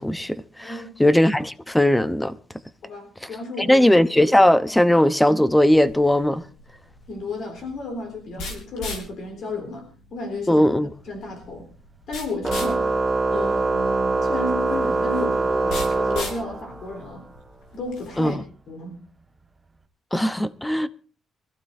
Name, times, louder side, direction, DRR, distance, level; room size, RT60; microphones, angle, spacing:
voice 1, 0.0-0.7 1.0-2.3 3.2-3.3 3.6-6.4 10.5-10.9 18.2-18.4 20.1-20.9, left 1 dB, 5° left, 0.8 m, -18 dB
voice 2, 0.6-1.0 2.8-4.1 7.1-10.7 11.1-11.7 12.1-13.0 13.3-17.3 17.7-18.4 18.7-19.0, left 2 dB, 55° left, 3.7 m, -33 dB
sound 1, 5.7-18.3, left 2 dB, 85° left, 4.2 m, -39 dB
Organ, 12.4-17.0, right 3 dB, 15° right, 1.1 m, -23 dB
24.5 x 15.0 x 2.6 m
cardioid pair, 150°, 0 cm